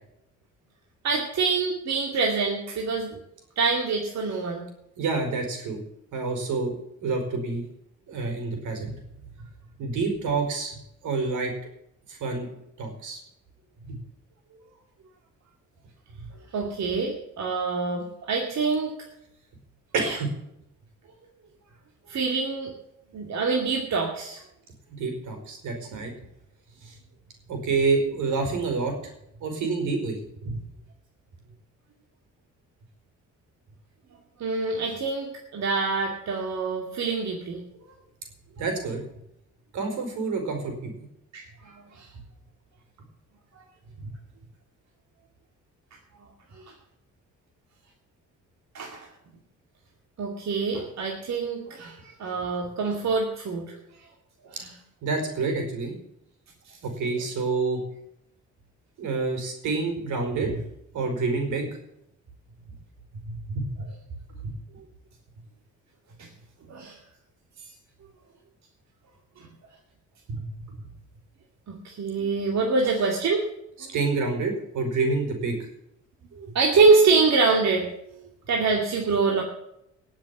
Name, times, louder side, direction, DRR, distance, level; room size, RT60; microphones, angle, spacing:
voice 1, 1.0-3.2 3.6-4.6 16.5-19.0 22.1-22.7 23.1-24.4 25.9-26.0 34.4-37.6 41.3-42.1 46.5-46.7 48.7-49.1 50.2-53.8 54.6-54.7 66.2-66.3 66.7-67.0 67.6-67.7 69.4-69.5 71.7-73.4 73.8-73.9 76.3-79.4, right 4 dB, 60° right, 1 dB, 2.5 m, -25 dB
voice 2, 5.0-5.8 6.1-6.7 7.0-7.6 8.1-8.9 9.8-10.8 11.0-11.5 12.1-12.5 12.8-13.2 13.9-14.0 19.9-20.3 24.9-26.1 26.8-27.0 27.5-29.0 29.4-30.6 38.6-39.0 39.7-40.9 44.0-44.1 55.0-55.9 56.8-57.8 59.0-60.6 60.9-61.7 63.3-63.9 64.4-64.5 70.3-70.5 73.9-75.7, right 4 dB, 80° right, 4 dB, 5.2 m, -28 dB
19.0 x 7.5 x 7.2 m, 0.80 s
cardioid pair, 90°, 30 cm